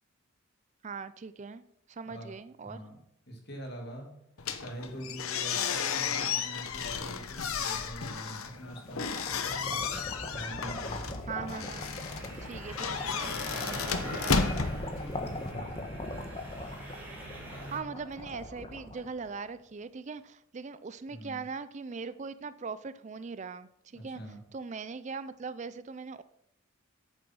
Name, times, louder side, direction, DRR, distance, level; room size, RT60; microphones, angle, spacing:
voice 1, 0.8-1.6 1.9-2.8 11.3-11.9 12.4-14.4 17.7-24.2 24.5-26.2, right 5 dB, 35° right, 14 dB, 0.4 m, -40 dB
voice 2, 2.6-3.0 3.3-4.1 4.6-9.8 10.3-11.1 13.0-13.6 14.0-16.1 21.1-21.4 23.9-24.4, right 1 dB, 50° left, 2 dB, 2.8 m, -44 dB
sound 1, 4.4-15.5, left 5 dB, 90° left, 1.0 m, -33 dB
sound 2, 8.4-19.6, left 1 dB, 25° left, 1.4 m, -41 dB
sound 3, 11.5-17.8, equal, 10° right, 2.8 m, -44 dB
8.9 x 7.8 x 6.2 m, 0.72 s
head